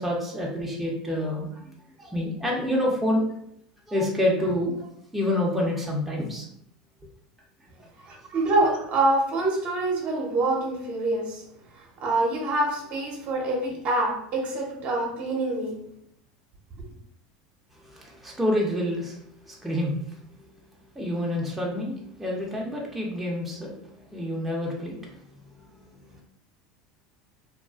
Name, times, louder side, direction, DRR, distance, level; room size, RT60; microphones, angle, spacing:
voice 1, 0.0-1.7 2.0-3.3 3.9-6.5 8.0-8.1 17.8-20.0 20.9-25.0 25.9-26.2, left 1 dB, 5° right, -3 dB, 0.7 m, -28 dB
voice 2, 8.1-11.4 11.8-15.8, right 2 dB, 50° right, 0 dB, 0.7 m, -26 dB
2.4 x 2.3 x 2.3 m, 0.71 s
hypercardioid pair, 100°, 3 cm